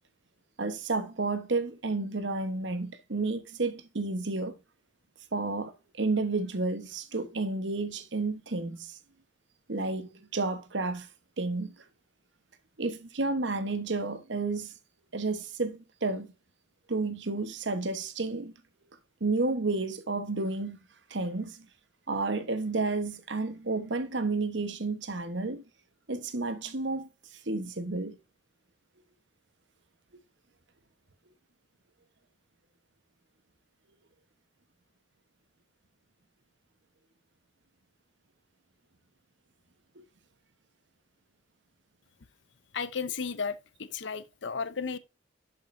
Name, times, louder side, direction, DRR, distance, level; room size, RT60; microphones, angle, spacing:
voice 1, 0.6-4.5 5.3-5.7 6.0-9.0 9.7-11.1 11.4-11.7 12.8-14.7 15.1-16.3 16.9-18.5 19.2-20.8 21.1-21.7 22.1-25.6 26.1-27.1 27.5-28.2, right 3 dB, 70° right, 1.1 m, -31 dB
voice 2, 42.7-45.0, left 5 dB, 70° left, 0.6 m, -34 dB
11.0 x 5.4 x 2.6 m
head